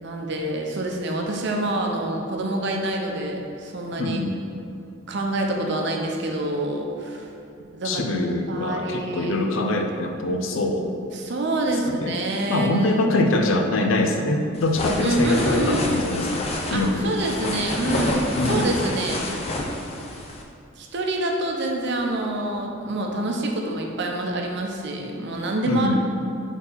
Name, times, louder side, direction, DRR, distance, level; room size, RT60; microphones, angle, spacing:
voice 1, 0.0-4.2 5.1-7.3 7.7-8.2 8.5-9.4 11.1-13.0 15.0-15.9 16.7-19.3 20.8-25.9, right 2 dB, 60° right, 1 dB, 0.7 m, -27 dB
voice 2, 4.0-4.5 7.8-10.9 12.0-12.1 12.5-16.4 16.7-17.2 18.4-18.7 25.7-25.9, left 2 dB, 85° left, 4 dB, 0.5 m, -23 dB
sound 1, 14.5-20.4, left 1 dB, 30° left, 0.6 m, -28 dB
4.4 x 4.0 x 5.5 m, 2.5 s
head